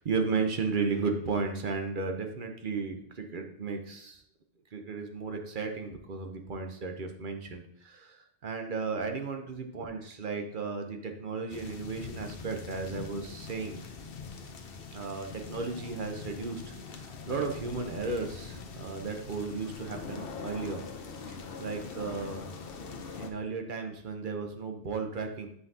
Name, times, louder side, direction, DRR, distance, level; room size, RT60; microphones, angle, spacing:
voice 1, 0.0-4.2 4.7-13.8 14.9-16.8 17.3-20.8 21.3-22.5 23.2-25.5, right 4 dB, 50° right, 5 dB, 0.9 m, -34 dB
sound 1, 11.5-23.3, left 5 dB, 60° left, 0.9 m, -43 dB
8.1 x 5.6 x 2.8 m, 0.69 s
omnidirectional pair, 1.1 m